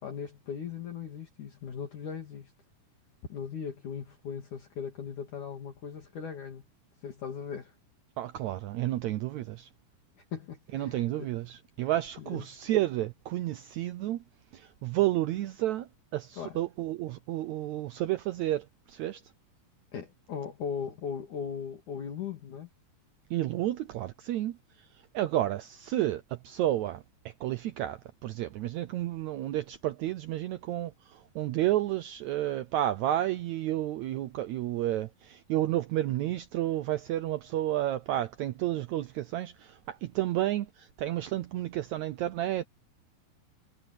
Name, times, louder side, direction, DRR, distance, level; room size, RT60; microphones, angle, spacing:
voice 1, 0.0-2.5 3.3-6.6 7.0-7.8 10.3-11.3 11.8-11.9 12.2-12.5 16.4-16.6 19.9-22.7, left 7 dB, 60° left, 3.9 m, -38 dB
voice 2, 8.2-9.7 10.7-14.2 14.5-19.2 23.3-24.9 25.1-42.6, right 14 dB, 90° right, 1.6 m, -31 dB
omnidirectional pair, 4.2 m